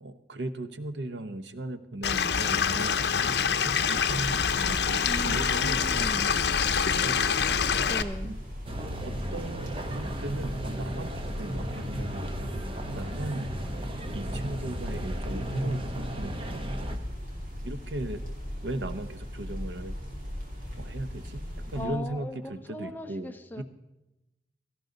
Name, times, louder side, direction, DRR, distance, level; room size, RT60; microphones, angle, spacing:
voice 1, 0.0-6.3 7.0-7.2 8.2-8.4 8.8-12.3 12.9-13.5 14.1-16.6 17.6-18.2 18.6-19.9 20.7-21.4 21.7-23.6, right 1 dB, 85° right, 11 dB, 0.8 m, -37 dB
Stream / Liquid, 2.0-8.0, left 7 dB, 70° left, 0.7 m, -26 dB
sound 1, 3.8-21.9, equal, 50° right, 3.6 m, -38 dB
voice 2, 5.0-6.3 7.8-8.3 21.7-23.6, left 1 dB, 10° left, 7 dB, 0.6 m, -38 dB
sound 2, 8.7-17.0, right 1 dB, 30° right, 1.0 m, -35 dB
17.0 x 14.0 x 3.9 m, 0.96 s
head